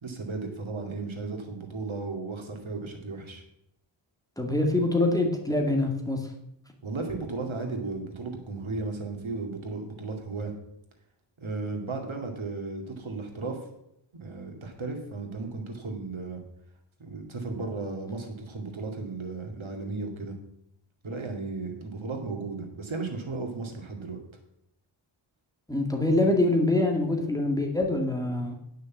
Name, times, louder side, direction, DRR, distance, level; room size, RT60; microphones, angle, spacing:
voice 1, 0.0-3.4 6.8-10.5 11.4-13.6 14.2-16.4 17.0-20.4 21.0-24.2, right 3 dB, 75° right, 3 dB, 2.4 m, -35 dB
voice 2, 4.4-6.2 25.7-28.6, left 2 dB, 5° left, 1 dB, 2.0 m, -25 dB
9.8 x 6.5 x 7.2 m, 0.78 s
wide cardioid pair, 75°, 47 cm